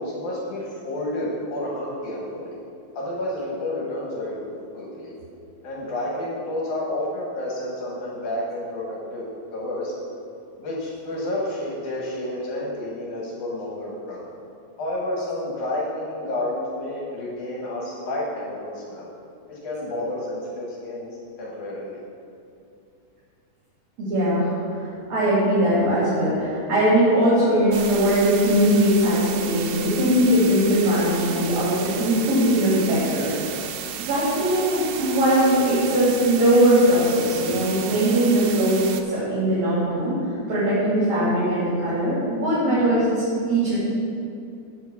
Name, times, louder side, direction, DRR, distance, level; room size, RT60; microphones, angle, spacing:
voice 1, 0.0-2.6 2.9-5.1 5.6-9.3 9.5-9.9 10.6-14.3 14.8-19.1 19.5-22.0, left 1 dB, 80° left, -4 dB, 2.9 m, -30 dB
voice 2, 24.0-33.5 34.0-38.8 39.1-40.2 40.5-43.1 43.5-43.8, right 1 dB, 65° right, -10 dB, 3.9 m, -20 dB
sound 1, 27.7-39.0, right 8 dB, 85° right, 1.3 m, -34 dB
8.8 x 5.7 x 7.0 m, 2.5 s
omnidirectional pair, 3.4 m